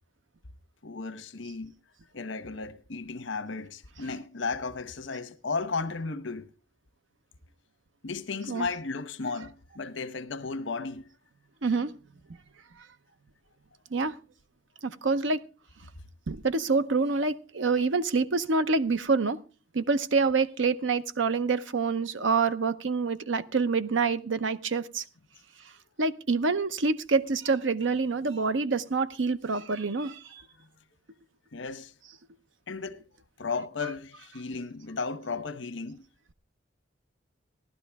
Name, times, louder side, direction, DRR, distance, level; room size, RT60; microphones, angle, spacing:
voice 1, 0.8-1.7 2.1-6.5 8.0-11.1 31.5-31.9 32.7-33.0 33.4-36.0, left 4 dB, 85° left, 1.0 m, -34 dB
voice 2, 14.8-15.4 16.3-19.4 19.7-25.0 26.0-30.2, right 4 dB, 90° right, 0.8 m, -26 dB
15.5 x 12.0 x 3.5 m
head